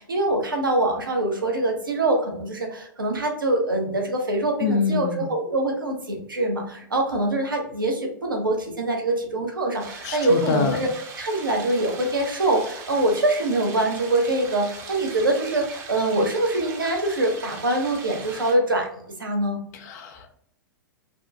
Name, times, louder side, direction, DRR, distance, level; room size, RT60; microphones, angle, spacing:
voice 1, 0.0-10.9 11.2-18.9 19.2-19.6, right 1 dB, 85° right, 2 dB, 0.6 m, -24 dB
voice 2, 4.6-5.3 10.0-10.8 19.7-20.4, left 5 dB, 50° left, 5 dB, 0.4 m, -26 dB
sound 1, 9.8-18.5, right 4 dB, 25° right, 0.5 m, -40 dB
2.6 x 2.1 x 2.5 m, 0.68 s
figure-of-eight pair, 100°, 11 cm